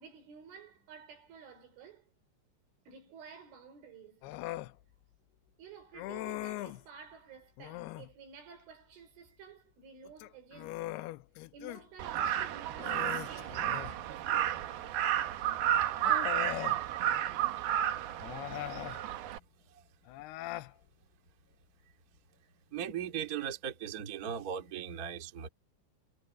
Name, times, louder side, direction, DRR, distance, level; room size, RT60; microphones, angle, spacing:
voice 1, 0.0-2.1 2.9-4.3 5.6-11.0 11.5-15.0, right 6 dB, 85° right, 7.6 m, -53 dB
Human voice, 4.2-4.7 5.9-6.8 7.6-8.1 10.0-11.8 12.2-12.3 12.8-14.0 15.2-15.3 16.0-16.8 18.2-19.0 20.1-20.7, left 17 dB, 90° left, 2.3 m, -40 dB
Crow, 12.0-19.4, right 11 dB, 65° right, 2.8 m, -32 dB
voice 2, 22.7-25.5, right 8 dB, 40° right, 1.3 m, -38 dB
omnidirectional pair, 5.4 m